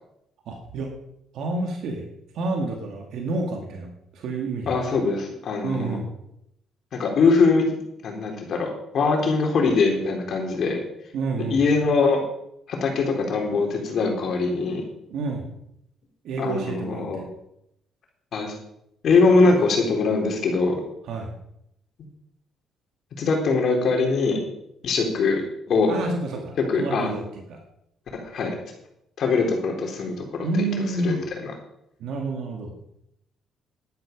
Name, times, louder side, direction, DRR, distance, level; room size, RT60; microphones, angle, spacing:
voice 1, 0.5-0.9 1.3-2.1 2.3-4.7 5.6-6.1 11.1-11.6 15.1-15.5 16.2-17.3 21.1-21.3 25.9-27.2 27.5-27.6 30.4-31.2 32.0-32.8, right 3 dB, 70° right, 2 dB, 2.3 m, -29 dB
voice 2, 4.7-6.0 6.9-7.6 8.0-10.8 11.5-12.2 12.7-14.8 16.4-17.2 18.3-18.5 19.0-20.8 23.2-24.4 24.8-25.4 25.7-26.0 26.7-27.1 28.1-28.6 29.2-30.7 31.0-31.5, left 4 dB, 60° left, 2 dB, 3.7 m, -22 dB
12.0 x 10.5 x 5.3 m, 0.79 s
cardioid pair, 95°, 0 cm